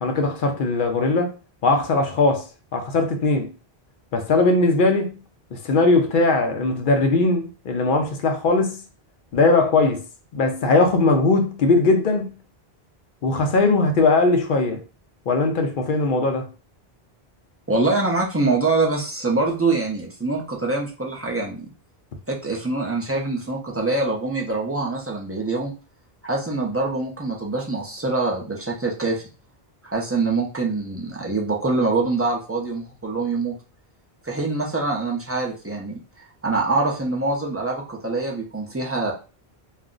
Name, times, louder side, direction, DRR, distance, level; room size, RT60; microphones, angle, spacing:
voice 1, 0.0-1.3 1.6-2.5 2.7-3.5 4.1-5.2 5.5-8.8 9.3-10.0 10.3-12.4 13.2-14.8 15.3-16.5, left 3 dB, 60° left, 0.7 m, -19 dB
voice 2, 17.7-21.7 22.3-25.7 26.2-29.3 29.8-33.5 34.2-35.9 36.4-39.1, right 3 dB, 20° right, 0.4 m, -24 dB
2.4 x 2.1 x 3.7 m
omnidirectional pair, 1.1 m